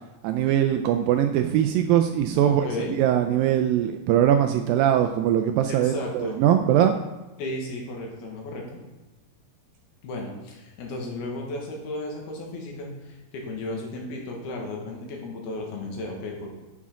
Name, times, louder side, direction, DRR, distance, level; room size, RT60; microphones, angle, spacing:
voice 1, 0.2-6.9, right 10 dB, 85° right, 7 dB, 2.1 m, -21 dB
voice 2, 2.5-3.0 5.7-6.4 7.4-8.8 10.0-16.6, left 2 dB, 80° left, 0 dB, 3.5 m, -34 dB
10.5 x 7.2 x 3.7 m, 1.1 s
omnidirectional pair, 4.5 m